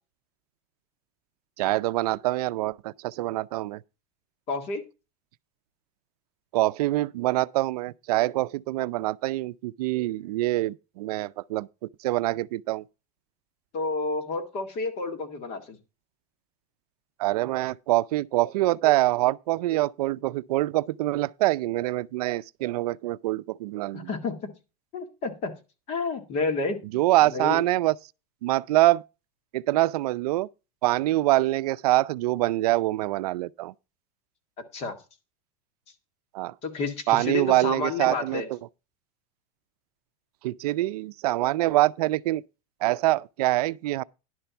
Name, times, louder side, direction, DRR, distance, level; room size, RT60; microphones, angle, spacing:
voice 1, 1.6-3.8 6.5-11.7 12.0-12.8 17.2-24.1 26.9-28.0 28.4-29.0 29.5-30.5 30.8-33.7 36.3-36.5 37.1-38.6 40.4-42.4 42.8-44.0, right 17 dB, 85° right, 0.5 m, -25 dB
voice 2, 4.5-4.8 13.7-15.8 23.9-24.5 24.9-25.5 25.9-26.8 27.2-27.6 34.7-35.0 36.6-38.5, left 3 dB, 30° left, 1.8 m, -30 dB
11.0 x 4.4 x 6.9 m
supercardioid pair, 170°, 19 cm